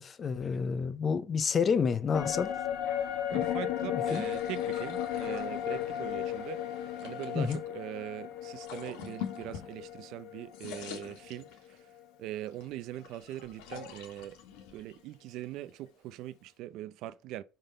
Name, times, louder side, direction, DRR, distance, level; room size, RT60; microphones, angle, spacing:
voice 1, 0.0-2.5 3.3-3.5 3.9-4.2 7.3-7.6, left 6 dB, 25° left, 0.4 m, -29 dB
sound 1, 2.1-11.7 12.0-12.1, left 10 dB, 70° left, 0.9 m, -35 dB
voice 2, 3.3-6.6 7.0-11.5 12.2-14.4 14.7-17.4, right 14 dB, 55° right, 0.4 m, -41 dB
Toilet reservoir tank, 4.1-7.6 8.4-10.2 10.4-11.9 12.4-15.9, left 8 dB, 90° left, 1.8 m, -46 dB
5.7 x 5.2 x 5.3 m
cardioid pair, 165°, 0 cm